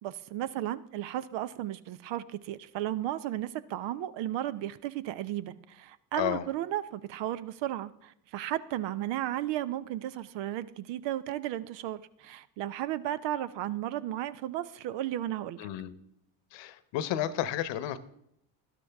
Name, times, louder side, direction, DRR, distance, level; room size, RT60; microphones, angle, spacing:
voice 1, 0.0-15.6, right 13 dB, 65° right, 16 dB, 0.8 m, -34 dB
voice 2, 15.6-15.9 16.5-18.0, left 11 dB, 65° left, 15 dB, 1.0 m, -32 dB
12.0 x 12.0 x 3.5 m, 0.74 s
hypercardioid pair, 65°, 47 cm